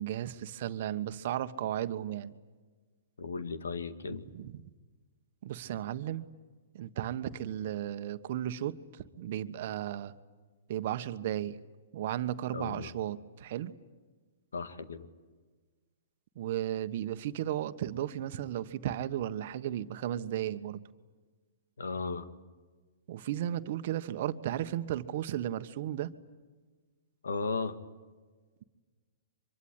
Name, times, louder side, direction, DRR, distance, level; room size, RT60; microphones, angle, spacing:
voice 1, 0.0-2.3 4.3-4.7 5.4-6.3 6.7-10.1 10.7-11.6 11.9-13.7 16.3-20.8 23.1-26.1, right 11 dB, 55° right, 11 dB, 1.3 m, -35 dB
voice 2, 3.2-4.3 12.5-12.9 14.5-15.1 21.8-22.3 27.2-27.8, left 4 dB, 85° left, 11 dB, 2.0 m, -35 dB
24.5 x 23.0 x 9.7 m, 1.4 s
hypercardioid pair, 130°, 0 cm